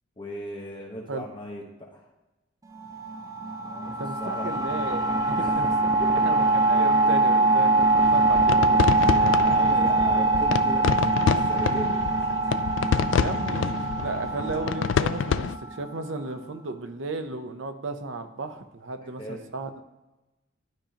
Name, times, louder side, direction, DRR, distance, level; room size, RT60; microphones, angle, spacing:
voice 1, 0.2-2.1 3.6-4.5 5.4-5.6 6.2-6.4 9.4-12.0 19.2-19.4, equal, 25° left, -2 dB, 1.2 m, -38 dB
sound 1, 2.7-16.2, right 2 dB, 20° right, 0.5 m, -23 dB
voice 2, 3.8-9.4 13.0-19.7, right 3 dB, 75° right, 8 dB, 0.7 m, -35 dB
sound 2, 8.0-15.6, left 7 dB, 70° left, 0.3 m, -27 dB
12.0 x 5.0 x 2.9 m, 1.1 s
head